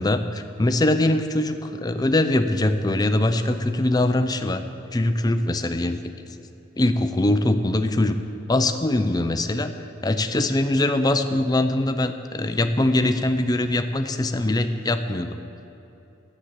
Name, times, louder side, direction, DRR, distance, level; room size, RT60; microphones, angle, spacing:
voice 1, 0.0-4.6 4.9-6.0 6.8-8.2 8.5-9.7 10.0-15.4, left 1 dB, 20° left, 8 dB, 0.5 m, -22 dB
10.5 x 7.3 x 8.1 m, 2.9 s
head